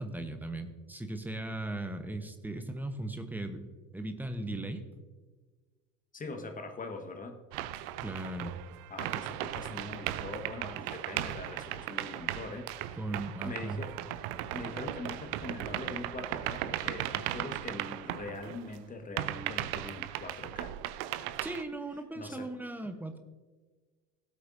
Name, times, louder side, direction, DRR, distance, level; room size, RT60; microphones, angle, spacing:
voice 1, 0.0-3.7 3.9-4.8 8.0-8.5 13.0-13.8 21.4-23.2, right 2 dB, 5° right, 8 dB, 1.0 m, -37 dB
voice 2, 6.1-7.4 8.9-13.0 13.4-14.0 14.5-20.7 22.1-22.5, left 3 dB, 15° left, 5 dB, 1.4 m, -42 dB
sound 1, 7.5-18.8 19.2-21.6, right 13 dB, 45° right, 0.6 m, -37 dB
17.0 x 8.2 x 2.6 m, 1.3 s
figure-of-eight pair, 65°, 47 cm